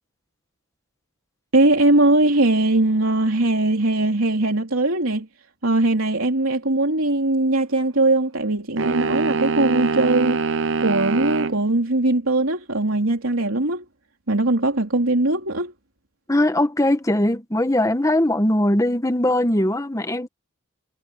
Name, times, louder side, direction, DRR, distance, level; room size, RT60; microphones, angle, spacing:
voice 1, 1.5-5.3 5.6-10.4 10.8-13.8 14.3-15.7, right 2 dB, 80° right, 3.2 m, -20 dB
sound 1, 8.8-11.6, right 4 dB, 60° right, 0.9 m, -23 dB
voice 2, 16.3-20.3, left 1 dB, 15° left, 1.3 m, -20 dB
head